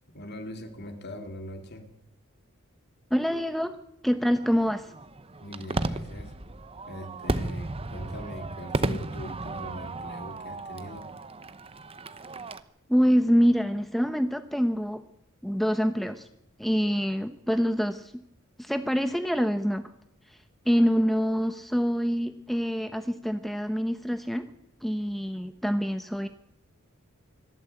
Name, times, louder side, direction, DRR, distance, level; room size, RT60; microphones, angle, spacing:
voice 1, 0.1-1.9 5.4-6.3 6.9-11.1, equal, 50° left, 5 dB, 2.7 m, -41 dB
voice 2, 3.1-3.8 4.0-4.9 12.9-15.0 15.4-16.3 16.6-18.2 18.6-19.8 20.3-20.4 20.7-24.5 24.8-26.3, equal, ahead, 8 dB, 0.8 m, -25 dB
Fireworks, 4.3-12.6, right 2 dB, 25° right, 0.9 m, -34 dB
25.5 x 12.5 x 8.3 m, 0.79 s
head